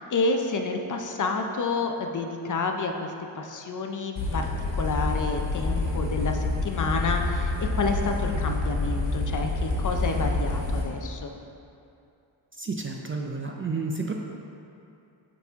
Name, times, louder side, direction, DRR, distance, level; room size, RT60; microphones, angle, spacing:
voice 1, 0.0-4.5 4.7-11.3, left 3 dB, 40° left, 4 dB, 0.5 m, -29 dB
sound 1, 4.2-10.8, left 2 dB, 65° left, 1.4 m, -27 dB
voice 2, 12.6-14.1, right 3 dB, 30° right, 1 dB, 0.4 m, -31 dB
8.8 x 4.1 x 3.5 m, 2.6 s
wide cardioid pair, 130°, 47 cm